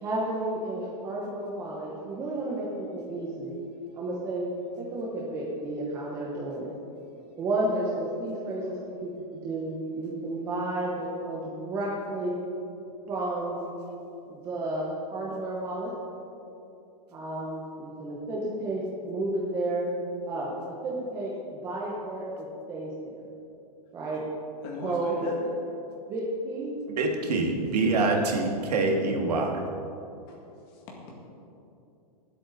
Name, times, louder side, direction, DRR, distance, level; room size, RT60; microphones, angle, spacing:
voice 1, 0.0-3.5 3.9-4.5 4.8-6.7 7.4-12.4 13.1-13.6 14.3-15.9 17.1-19.9 20.3-20.5 20.8-23.1 23.9-24.2 24.8-25.3 26.1-26.7, right 2 dB, 15° right, -4 dB, 0.9 m, -32 dB
voice 2, 24.6-25.4 27.9-28.3 30.3-30.4 30.7-31.2, left 2 dB, 25° left, -2 dB, 2.0 m, -39 dB
voice 3, 26.9-29.6, right 3 dB, 80° right, 1 dB, 2.2 m, -25 dB
19.0 x 8.3 x 4.0 m, 2.8 s
supercardioid pair, 180°, 20 cm